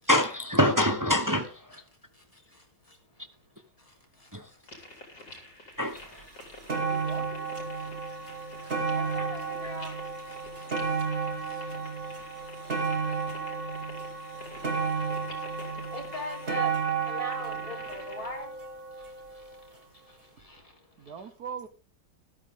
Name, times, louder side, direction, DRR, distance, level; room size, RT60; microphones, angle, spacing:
voice 1, 0.1-1.8 4.3-4.5 5.8-6.3 9.6-9.7, left 1 dB, 15° right, 0.6 m, -26 dB
voice 2, 3.8-5.5 5.8-6.0 7.2-7.3 7.7-8.2 8.6-21.3, left 1 dB, 20° left, 3.9 m, -45 dB
sound 1, 4.7-18.3, left 1 dB, 55° left, 4.0 m, -48 dB
sound 2, 6.0-6.1 6.4-19.6 20.4-20.5, right 5 dB, 35° right, 2.5 m, -32 dB
voice 3, 6.8-7.5 21.0-21.7, right 6 dB, 60° right, 1.4 m, -41 dB
14.0 x 12.5 x 3.7 m
omnidirectional pair, 2.0 m